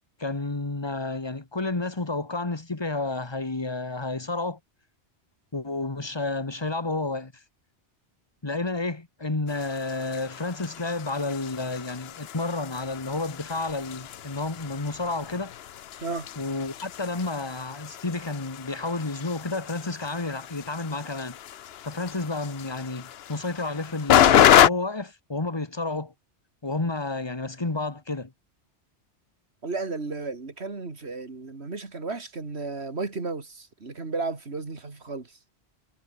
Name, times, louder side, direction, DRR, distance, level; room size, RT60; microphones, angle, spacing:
voice 1, 0.2-4.6 5.5-7.3 8.4-15.5 16.4-21.4 21.8-26.1 26.6-28.3, left 3 dB, 25° left, 1.6 m, -31 dB
sound 1, 9.5-24.7, left 10 dB, 65° left, 0.9 m, -27 dB
voice 2, 29.6-35.4, right 3 dB, 70° right, 3.0 m, -33 dB
omnidirectional pair, 1.1 m